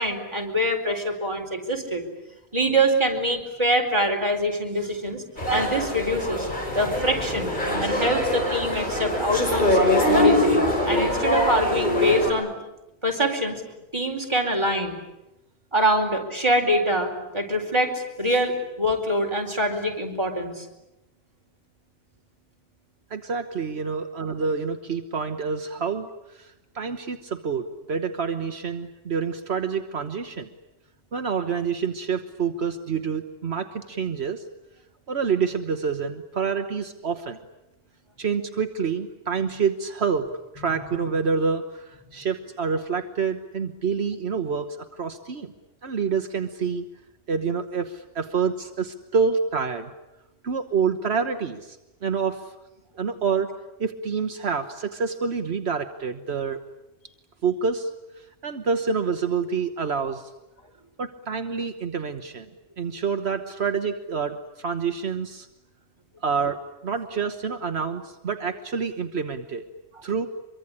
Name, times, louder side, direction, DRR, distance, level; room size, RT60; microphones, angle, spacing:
voice 1, 0.0-2.0 2.5-5.2 5.5-9.8 10.0-12.5 13.0-13.6 13.9-15.0 15.7-20.7, equal, 25° right, 2 dB, 4.3 m, -24 dB
sound 1, 5.4-12.3, left 1 dB, 45° left, 5.4 m, -23 dB
voice 2, 23.1-30.5 31.1-34.5 35.1-37.4 38.2-40.3 40.5-45.5 45.8-46.8 47.3-49.9 50.4-52.5 52.9-53.5 53.8-56.6 57.4-57.9 58.2-60.3 61.0-62.5 62.8-65.5 66.2-69.6 70.0-70.3, right 5 dB, 75° right, 6 dB, 1.5 m, -27 dB
24.5 x 24.0 x 9.9 m, 0.96 s
omnidirectional pair, 1.1 m